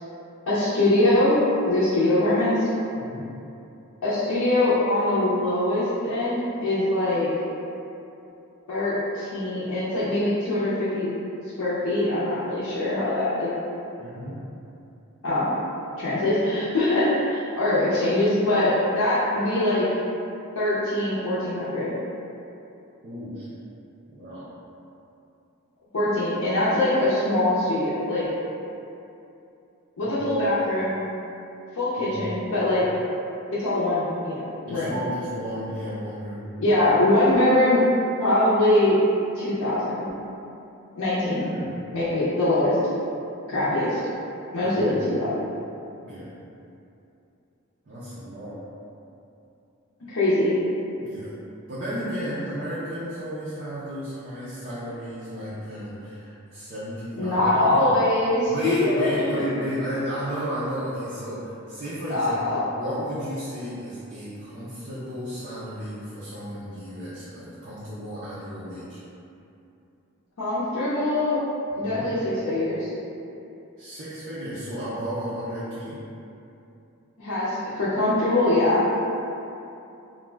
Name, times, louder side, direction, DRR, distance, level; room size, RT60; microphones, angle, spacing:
voice 1, 0.5-1.4 1.7-2.7 4.0-7.3 8.7-11.1 11.6-13.5 15.2-15.5 16.0-19.9 20.5-21.9 25.9-28.3 30.0-30.9 31.7-32.8 33.5-35.0 36.6-37.8 38.2-39.0 39.3-40.1 41.0-41.5 41.9-42.8 43.5-44.0 44.5-45.3 50.1-50.6 57.2-59.5 62.1-62.7 70.4-71.4 71.8-72.9 77.2-78.8, left 1 dB, 75° left, -11 dB, 0.6 m, -23 dB
voice 2, 3.0-3.3 14.0-14.4 23.0-23.5 24.1-24.5 30.0-30.2 32.0-32.3 32.8-32.9 34.7-36.5 41.4-41.8 43.5-43.7 44.6-45.0 46.0-46.3 47.8-48.6 51.0-51.3 51.7-57.8 58.4-69.0 71.7-72.1 73.8-76.0, equal, 45° right, -11 dB, 0.5 m, -33 dB
2.5 x 2.1 x 3.2 m, 2.7 s
head